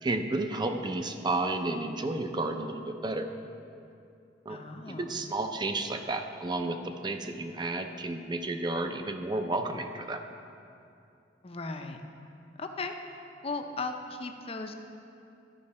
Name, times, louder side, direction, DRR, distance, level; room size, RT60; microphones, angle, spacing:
voice 1, 0.0-3.3 4.5-4.6 4.9-10.2, right 2 dB, 25° right, 6 dB, 0.5 m, -32 dB
voice 2, 4.5-5.2 11.4-12.0 12.6-13.0 13.4-14.7, left 3 dB, 35° left, 5 dB, 0.6 m, -37 dB
13.5 x 5.7 x 4.2 m, 2.6 s
head